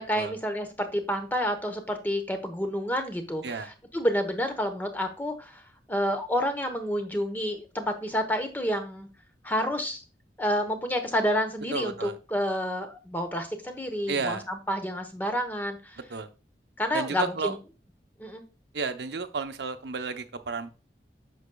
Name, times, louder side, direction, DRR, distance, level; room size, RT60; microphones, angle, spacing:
voice 1, 0.0-5.6 5.9-9.1 9.4-10.0 10.4-16.0 16.8-17.6 18.2-18.4, equal, 10° left, 1.0 m, -29 dB
voice 2, 11.7-12.2 14.1-14.4 16.1-16.3 16.9-17.5 18.7-20.7, right 4 dB, 75° right, 0.8 m, -32 dB
8.1 x 6.3 x 2.3 m
head